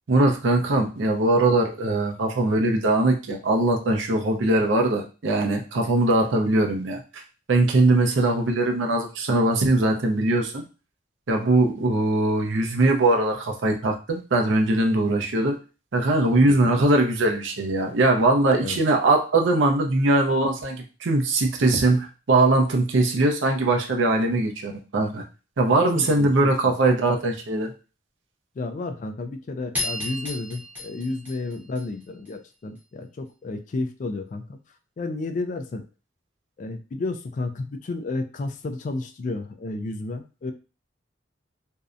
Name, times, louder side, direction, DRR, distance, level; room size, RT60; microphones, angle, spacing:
voice 1, 0.1-7.2 7.5-10.6 11.3-15.6 15.9-25.2 25.6-27.7, right 2 dB, 90° right, 2 dB, 0.6 m, -21 dB
voice 2, 16.3-16.7 18.6-18.8 25.9-26.7 28.6-34.6 35.0-35.8 36.6-40.5, left 2 dB, 40° left, 8 dB, 0.3 m, -32 dB
sound 1, 29.7-32.3, left 2 dB, 10° right, 0.7 m, -33 dB
2.6 x 2.1 x 2.4 m, 0.33 s
head